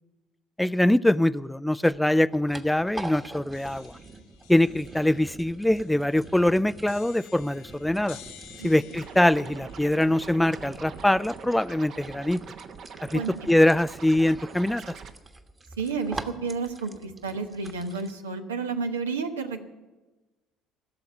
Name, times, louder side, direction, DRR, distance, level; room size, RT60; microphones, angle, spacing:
voice 1, 0.6-3.9 4.5-8.2 8.6-12.4 13.0-13.2 13.5-15.0, left 1 dB, 5° left, 18 dB, 0.4 m, -23 dB
sound 1, 2.2-18.1, right 3 dB, 20° right, 1.3 m, -44 dB
sound 2, 3.5-11.5, left 9 dB, 70° left, 1.8 m, -52 dB
Scratching (performance technique), 8.9-15.1, right 6 dB, 55° right, 1.0 m, -43 dB
voice 2, 15.8-19.6, right 4 dB, 85° right, 5 dB, 1.0 m, -31 dB
16.5 x 7.0 x 9.2 m, 1.2 s
hypercardioid pair, 60°, 0 cm